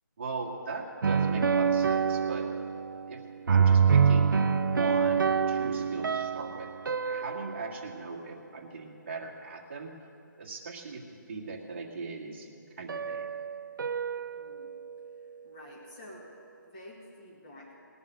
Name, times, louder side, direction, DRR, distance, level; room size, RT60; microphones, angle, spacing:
voice 1, 0.2-2.5 3.1-3.2 3.5-6.7 7.0-9.9 10.4-12.5 12.8-13.3, right 3 dB, 35° right, 0 dB, 1.7 m, -39 dB
sound 1, 1.0-3.2 3.5-7.8 12.9-14.9, right 6 dB, 80° right, 0.5 m, -26 dB
voice 2, 14.4-14.7 15.4-16.2 16.6-17.7, left 1 dB, 25° left, -4 dB, 2.1 m, -49 dB
19.5 x 7.0 x 9.0 m, 2.7 s
hypercardioid pair, 170°, 11 cm